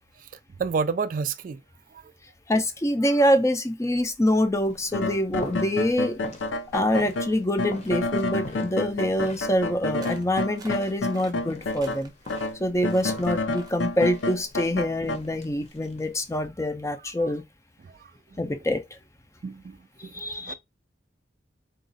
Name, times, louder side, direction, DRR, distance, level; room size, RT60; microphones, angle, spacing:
voice 1, 0.6-1.6 17.9-18.0 19.4-19.8 20.0-20.1 20.4-20.5, right 5 dB, 45° right, 0.3 m, -28 dB
voice 2, 2.5-6.2 6.7-12.1 12.6-17.4 18.4-18.8 20.0-20.5, equal, 15° left, 0.5 m, -25 dB
sound 1, 4.2-16.5, left 1 dB, 40° left, 0.8 m, -45 dB
sound 2, 4.9-12.0 12.3-15.2, left 2 dB, 85° left, 0.5 m, -29 dB
sound 3, 10.0-10.3 10.6-11.3 11.7-12.5 12.8-13.2 13.5-13.8, right 3 dB, 20° right, 0.7 m, -47 dB
3.9 x 2.4 x 3.9 m
head